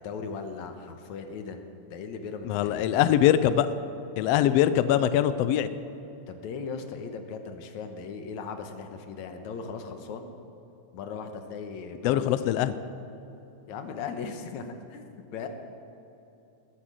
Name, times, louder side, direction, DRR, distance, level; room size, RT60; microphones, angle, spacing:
voice 1, 0.0-1.6 1.9-3.0 4.3-4.5 6.3-10.3 10.9-12.5 13.7-15.0 15.3-15.5, left 5 dB, 70° left, 6 dB, 2.3 m, -38 dB
voice 2, 2.4-3.7 4.2-5.7 12.0-12.7, left 11 dB, 90° left, 12 dB, 1.4 m, -22 dB
20.5 x 8.7 x 6.3 m, 3.0 s
omnidirectional pair, 3.6 m